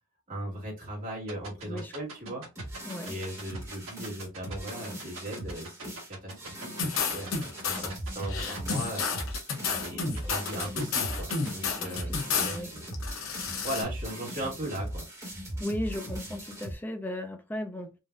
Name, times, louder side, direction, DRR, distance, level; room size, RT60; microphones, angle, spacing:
voice 1, 0.3-2.7 3.1-12.9 13.2-13.3 13.6-15.1, right 1 dB, 40° right, 2.1 m, -38 dB
sound 1, 1.3-11.5, right 4 dB, 70° right, 1.4 m, -42 dB
voice 2, 1.6-1.9 2.3-2.4 2.8-3.1 7.7-7.9 10.2-10.7 11.7-12.7 15.6-17.9, left 1 dB, 10° left, 0.5 m, -37 dB
sound 2, 2.6-16.7, right 1 dB, 15° right, 1.5 m, -40 dB
sound 3, 6.8-7.9 8.3-12.6 12.9-13.8, left 5 dB, 65° left, 0.8 m, -31 dB
3.9 x 2.6 x 2.5 m
head